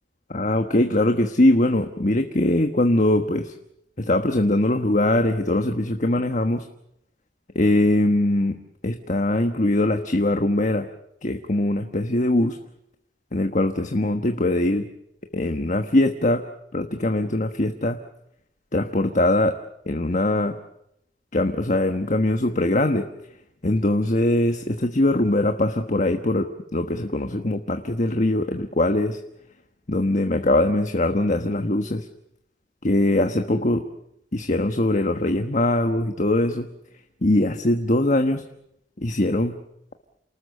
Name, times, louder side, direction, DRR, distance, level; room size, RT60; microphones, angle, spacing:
voice 1, 0.3-3.5 4.0-6.6 7.5-8.6 8.8-10.9 11.2-12.6 13.3-14.9 15.3-16.4 16.7-18.0 18.7-19.5 19.9-20.6 21.3-23.0 23.6-29.2 29.9-32.1 32.8-33.8 34.3-36.7 37.2-38.4 39.0-39.6, left 1 dB, 45° left, 6 dB, 1.3 m, -22 dB
28.5 x 19.5 x 6.8 m, 0.79 s
head